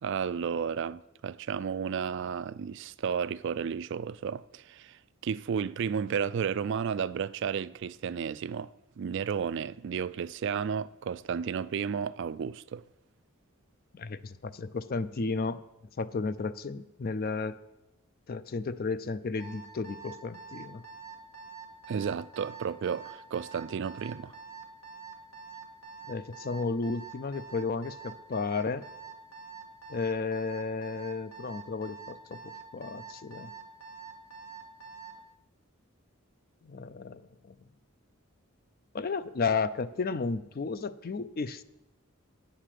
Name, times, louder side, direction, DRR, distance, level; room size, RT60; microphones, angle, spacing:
voice 1, 0.0-8.7 9.0-12.8 21.9-24.3, right 7 dB, 60° right, 0.3 m, -33 dB
voice 2, 13.9-15.6 16.0-17.6 18.3-20.8 26.1-28.9 29.9-33.5 36.6-37.5 38.9-41.6, left 4 dB, 45° left, 0.4 m, -33 dB
Alarm, 19.4-35.2, right 5 dB, 85° left, 2.0 m, -46 dB
8.8 x 6.6 x 7.5 m
head